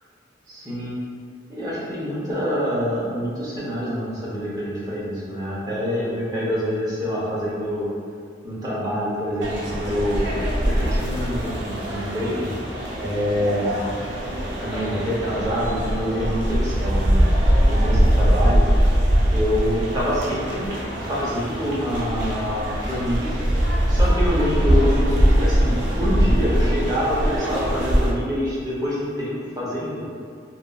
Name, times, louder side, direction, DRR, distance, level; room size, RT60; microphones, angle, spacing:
voice 1, 0.5-1.0 1.5-7.9 8.4-10.3 10.6-12.5 13.0-13.7 14.6-17.2 17.6-18.7 19.3-20.7 21.0-23.3 23.9-30.0, equal, 20° right, -8 dB, 0.6 m, -26 dB
sound 1, 9.4-28.1, equal, 75° right, 0.5 m, -22 dB
2.9 x 2.4 x 2.2 m, 2.2 s
head